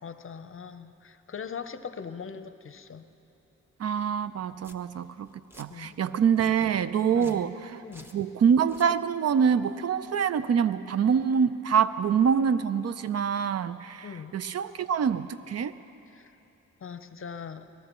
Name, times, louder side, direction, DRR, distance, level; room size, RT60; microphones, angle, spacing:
voice 1, 0.0-3.0 5.7-6.0 7.0-7.4 7.8-8.1 14.0-14.3 16.1-16.3 16.8-17.7, left 6 dB, 45° left, 11 dB, 0.7 m, -41 dB
voice 2, 3.8-5.3 5.6-7.8 8.1-15.7, right 7 dB, 55° right, 14 dB, 0.5 m, -25 dB
Domestic sounds home sounds, 4.2-4.3 4.6-4.8 5.3-5.7 6.2-6.5 7.1-7.5 7.9-8.2 8.6-8.9, equal, 5° right, 1.0 m, -51 dB
22.5 x 19.0 x 3.0 m, 2.9 s
cardioid pair, 60°, 31 cm